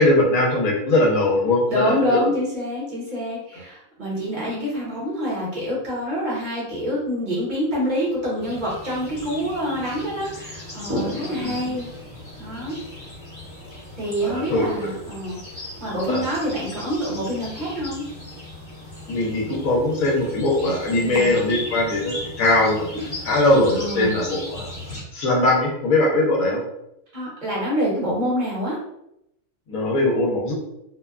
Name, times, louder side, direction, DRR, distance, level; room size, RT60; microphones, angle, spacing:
voice 1, 0.0-2.2 11.4-11.8 14.2-14.7 16.1-16.2 19.1-24.7 25.1-26.6 29.7-30.5, left 2 dB, 75° left, -2 dB, 1.1 m, -21 dB
voice 2, 1.7-12.1 12.4-12.8 14.0-15.4 15.8-18.0 20.9-21.3 23.7-24.1 27.1-28.8, equal, 40° right, -6 dB, 0.9 m, -26 dB
sound 1, 8.4-25.0, left 1 dB, 35° left, 1.4 m, -36 dB
2.7 x 2.2 x 2.3 m, 0.80 s
omnidirectional pair, 1.5 m